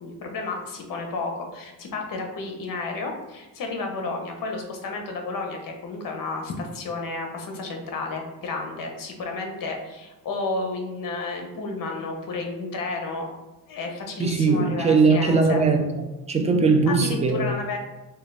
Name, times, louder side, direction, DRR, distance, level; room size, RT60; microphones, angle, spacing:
voice 1, 0.0-13.3 13.7-15.6 16.9-17.8, left 3 dB, 60° left, 2 dB, 0.8 m, -32 dB
voice 2, 14.2-17.5, right 4 dB, 20° right, 4 dB, 0.3 m, -20 dB
3.8 x 2.2 x 3.3 m, 1.1 s
cardioid pair, 135°, 39 cm